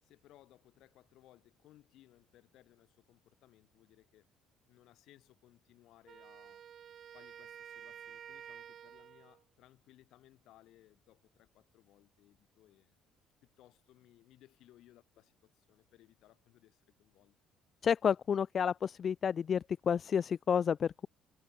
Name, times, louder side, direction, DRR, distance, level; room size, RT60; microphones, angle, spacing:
voice 1, 0.0-4.3 4.7-6.6 7.1-13.0 13.4-17.4, left 14 dB, 70° left, 6.3 m, -63 dB
Wind instrument woodwind instrument, 6.1-9.4, right 9 dB, 45° right, 2.4 m, -51 dB
voice 2, 17.8-21.1, left 7 dB, 40° left, 0.3 m, -30 dB
cardioid pair, 130°, 0 cm